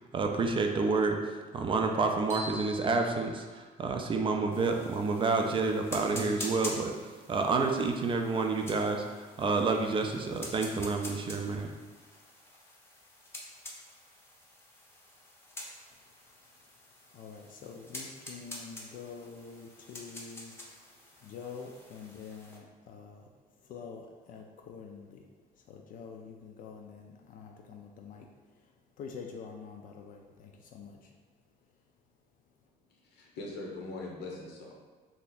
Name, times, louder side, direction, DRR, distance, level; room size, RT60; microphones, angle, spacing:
voice 1, 0.1-11.7, right 4 dB, 30° right, 3 dB, 0.4 m, -29 dB
sound 1, 2.3-4.1, right 1 dB, 15° right, 0.8 m, -44 dB
sound 2, 4.5-22.6, left 1 dB, 15° left, 0.6 m, -47 dB
voice 2, 17.1-20.5 21.2-23.2 23.7-25.2 25.7-28.3 29.0-30.9, left 5 dB, 55° left, 2 dB, 0.4 m, -46 dB
voice 3, 32.9-34.7, left 2 dB, 75° left, -1 dB, 0.8 m, -41 dB
2.8 x 2.4 x 4.0 m, 1.4 s
cardioid pair, 110°, 17 cm